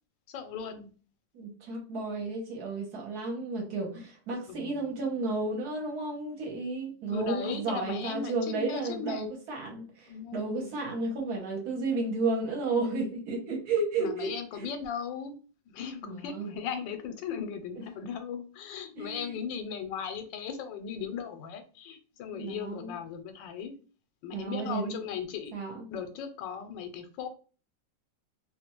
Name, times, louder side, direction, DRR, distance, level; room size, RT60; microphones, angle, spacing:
voice 1, 0.3-0.9 4.5-4.8 7.1-9.3 10.1-10.7 14.0-15.4 15.7-23.7 24.2-25.5 25.9-27.3, left 6 dB, 85° left, 8 dB, 1.3 m, -37 dB
voice 2, 1.3-14.7 16.0-16.5 19.0-19.4 22.3-22.9 24.3-25.1 25.5-25.8, right 3 dB, 65° right, 1 dB, 1.2 m, -33 dB
3.0 x 2.2 x 2.9 m, 0.37 s
omnidirectional pair, 2.0 m